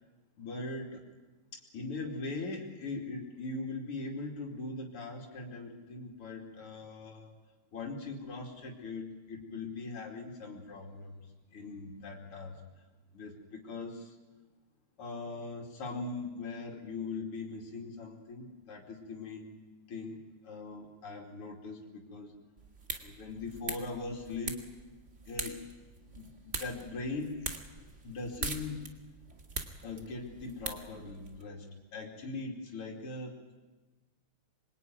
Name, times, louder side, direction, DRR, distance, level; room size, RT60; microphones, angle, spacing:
voice 1, 0.4-1.0 1.5-7.3 7.7-11.2 11.5-12.6 13.1-14.2 15.0-19.6 19.9-22.3 23.0-24.7 25.3-25.6 26.2-27.5 28.0-28.9 29.8-33.5, left 3 dB, 80° left, 0 dB, 3.6 m, -40 dB
sound 1, 22.6-31.4, right 3 dB, 35° right, 2.2 m, -43 dB
26.5 x 23.0 x 9.3 m, 1.2 s
omnidirectional pair, 2.4 m